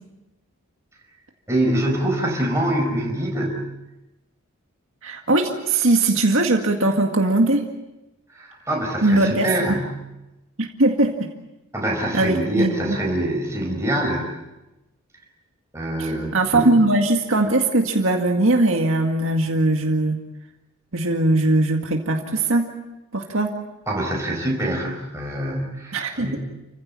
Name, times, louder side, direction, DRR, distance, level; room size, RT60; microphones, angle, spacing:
voice 1, 1.5-3.7 8.3-9.9 11.7-14.3 15.7-16.7 23.9-26.4, right 1 dB, 15° right, 0 dB, 4.9 m, -25 dB
voice 2, 5.0-7.6 9.0-9.7 10.6-11.3 12.1-13.0 16.0-20.2 20.9-22.6 23.1-23.5 25.9-26.3, right 2 dB, 65° right, 3 dB, 2.0 m, -20 dB
30.0 x 16.0 x 8.9 m, 0.99 s
head